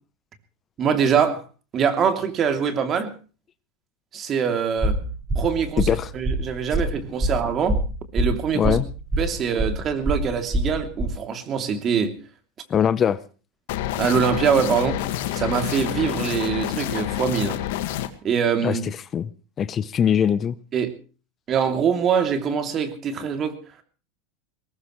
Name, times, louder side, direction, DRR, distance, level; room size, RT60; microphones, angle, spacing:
voice 1, 0.8-1.4 1.7-3.1 4.1-5.0 5.3-7.8 8.1-8.8 9.2-12.1 14.0-15.0 15.3-17.6 18.2-18.8 20.7-21.0 21.5-23.6, right 7 dB, 35° right, 3.0 m, -23 dB
sound 1, 4.8-11.0, right 1 dB, 15° right, 7.2 m, -25 dB
voice 2, 8.5-8.8 12.7-13.2 18.6-18.8 19.1-19.3 19.6-20.6, left 8 dB, 35° left, 0.8 m, -21 dB
sound 2, 13.7-18.1, left 13 dB, 70° left, 1.8 m, -28 dB
22.5 x 19.0 x 3.2 m
hypercardioid pair, 100°, 0 cm